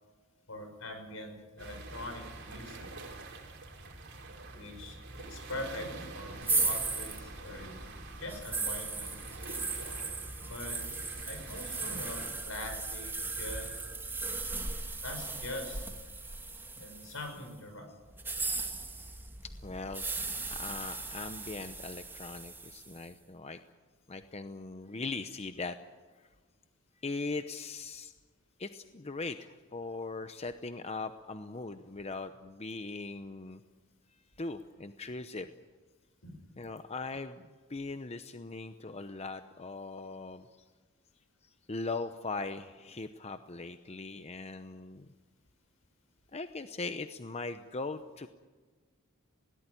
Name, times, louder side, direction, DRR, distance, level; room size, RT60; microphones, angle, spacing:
voice 1, 0.5-2.9 4.5-5.9 6.1-7.8 8.2-9.2 10.4-10.8 11.2-13.8 15.0-15.9 16.7-17.9 36.2-36.4, left 1 dB, 75° left, 6 dB, 6.4 m, -43 dB
sound 1, 1.6-12.3, right 2 dB, 55° right, 4.6 m, -46 dB
sound 2, 6.4-17.4 18.1-23.0, right 3 dB, 10° right, 2.0 m, -37 dB
voice 2, 19.4-20.1 20.5-23.6 24.1-25.8 26.2-26.3 27.0-28.1 28.6-33.6 34.4-35.5 36.6-40.7 41.4-45.1 46.3-48.3, left 3 dB, 30° left, 9 dB, 0.8 m, -40 dB
20.5 x 18.5 x 9.8 m, 1.4 s
head